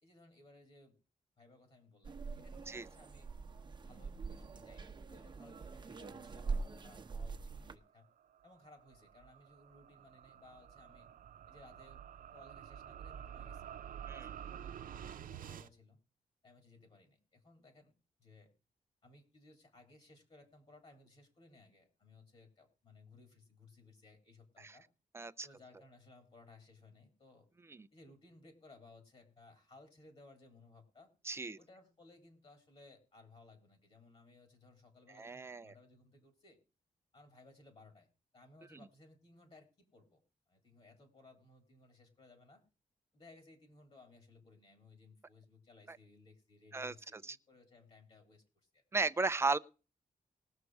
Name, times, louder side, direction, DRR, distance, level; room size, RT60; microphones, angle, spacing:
voice 1, 0.0-1.0 1.4-3.3 3.7-8.1 8.4-11.1 11.5-12.0 12.3-13.7 14.1-16.0 16.4-17.9 18.2-18.5 19.0-24.9 25.4-27.5 27.9-31.1 31.6-36.6 37.1-38.1 38.3-40.2 40.5-42.6 43.1-48.4 48.7-48.8, left 2 dB, 45° left, 3.1 m, -61 dB
sound 1, 2.0-7.8, right 4 dB, 35° right, 1.0 m, -43 dB
sound 2, 7.9-15.7, right 9 dB, 90° right, 0.6 m, -49 dB
voice 2, 25.1-25.5 31.2-31.6 35.2-35.7 45.9-46.0 46.7-47.4 48.9-49.6, right 3 dB, 20° right, 0.5 m, -35 dB
20.0 x 6.7 x 4.7 m
wide cardioid pair, 130°, 14 cm